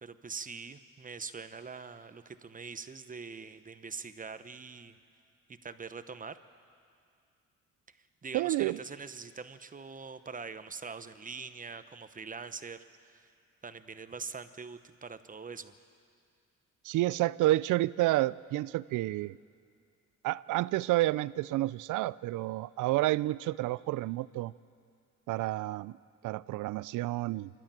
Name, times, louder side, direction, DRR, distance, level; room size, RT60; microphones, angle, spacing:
voice 1, 0.0-5.0 5.6-6.4 7.9-8.0 8.2-13.3 13.6-15.7, right 5 dB, 25° right, 11 dB, 1.0 m, -43 dB
voice 2, 8.3-8.8 16.8-19.4 20.2-24.5 25.3-25.9 26.2-27.5, right 17 dB, 85° right, 19 dB, 0.5 m, -30 dB
25.5 x 12.5 x 9.0 m, 2.3 s
cardioid pair, 90°, 30 cm